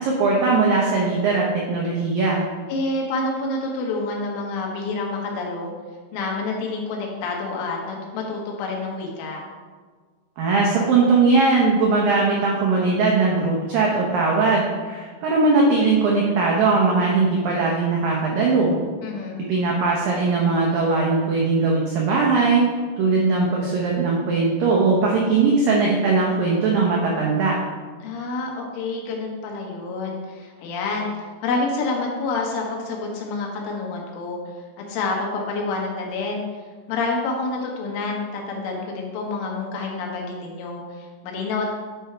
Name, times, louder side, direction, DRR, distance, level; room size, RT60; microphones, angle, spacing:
voice 1, 0.0-2.4 10.4-18.8 19.5-22.7 23.0-27.5, right 3 dB, 90° right, -2 dB, 1.9 m, -20 dB
voice 2, 2.7-5.7 6.1-9.4 19.0-19.5 28.0-31.1 31.4-34.4 34.9-36.5 36.9-41.7, left 3 dB, 90° left, -1 dB, 3.8 m, -28 dB
9.9 x 4.9 x 4.5 m, 1.5 s
omnidirectional pair, 5.4 m